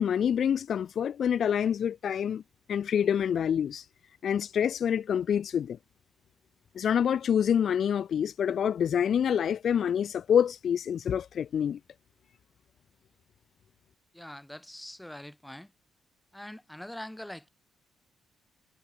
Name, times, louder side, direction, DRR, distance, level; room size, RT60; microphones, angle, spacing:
voice 1, 0.0-2.4 2.7-3.9 4.2-5.8 6.8-11.8, left 8 dB, 60° left, 0.4 m, -27 dB
voice 2, 14.1-15.7 16.3-17.5, left 1 dB, 5° left, 2.7 m, -43 dB
cardioid pair, 90°, 0 cm